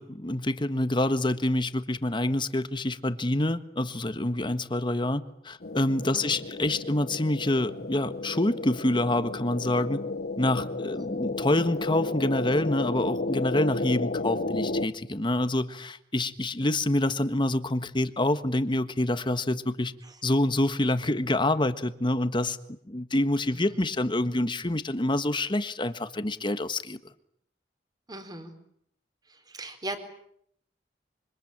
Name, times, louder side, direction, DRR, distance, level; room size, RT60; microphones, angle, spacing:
voice 1, 0.0-10.0 10.4-19.9 20.2-27.0, left 1 dB, 30° left, 11 dB, 1.4 m, -27 dB
sound 1, 5.6-14.9, left 2 dB, 60° left, 1.2 m, -33 dB
voice 2, 6.1-6.5 10.9-11.1 20.0-20.2 23.5-23.8 28.1-28.6 29.3-30.0, right 1 dB, 25° right, 8 dB, 3.9 m, -40 dB
26.5 x 25.0 x 8.9 m, 0.71 s
head